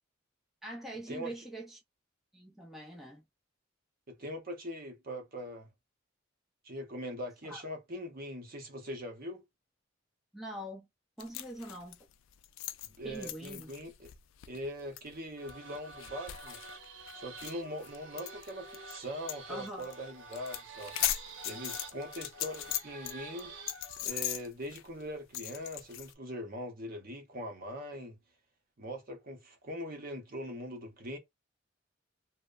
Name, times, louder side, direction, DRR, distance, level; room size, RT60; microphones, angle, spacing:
voice 1, 0.6-1.8 2.3-3.2 7.4-7.6 10.3-10.9 11.2-12.0 13.0-13.7 19.5-19.9, right 1 dB, ahead, 0.5 m, -43 dB
voice 2, 4.1-5.7 6.6-9.4 12.8-14.1 14.5-16.6 17.1-20.9 21.4-23.5 24.0-28.2 28.8-31.2, equal, 50° right, 0.8 m, -41 dB
sound 1, 11.2-18.9 19.3-19.4 19.7-20.0 20.3-23.1 23.4-26.1, left 13 dB, 85° left, 0.3 m, -39 dB
sound 2, 15.4-24.1, right 3 dB, 80° right, 0.8 m, -48 dB
2.7 x 2.1 x 2.4 m
head